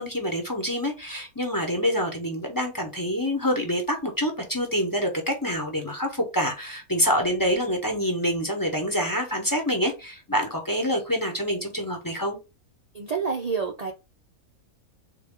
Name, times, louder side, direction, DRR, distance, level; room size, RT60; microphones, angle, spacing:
voice 1, 0.0-12.4, equal, 15° left, 0.8 m, -26 dB
voice 2, 12.9-13.9, right 5 dB, 65° right, 0.4 m, -28 dB
3.8 x 3.5 x 3.6 m
omnidirectional pair, 1.5 m